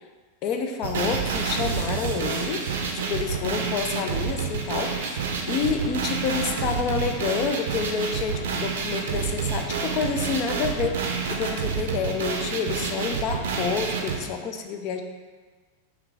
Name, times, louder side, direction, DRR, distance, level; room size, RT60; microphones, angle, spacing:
voice 1, 0.4-2.7 2.9-15.0, left 6 dB, 40° left, 5 dB, 0.4 m, -29 dB
sound 1, 0.8-14.2, right 6 dB, 60° right, 0.5 m, -28 dB
3.2 x 3.0 x 3.7 m, 1.4 s
figure-of-eight pair, 90°, 0 cm